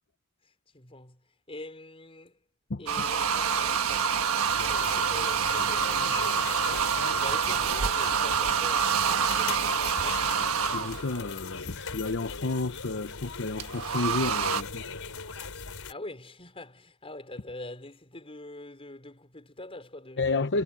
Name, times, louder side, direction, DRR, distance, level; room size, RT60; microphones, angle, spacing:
voice 1, 0.4-1.2 1.5-2.4 2.8-10.4 15.9-20.4, left 2 dB, 25° left, 5.1 m, -44 dB
voice 2, 2.7-3.1 5.6-5.7 10.7-14.8 20.2-20.6, left 3 dB, 55° left, 0.9 m, -31 dB
sound 1, 2.9-11.2 13.6-14.6, right 6 dB, 75° right, 1.4 m, -27 dB
sound 2, 4.5-15.9, left 4 dB, 70° left, 4.6 m, -39 dB
head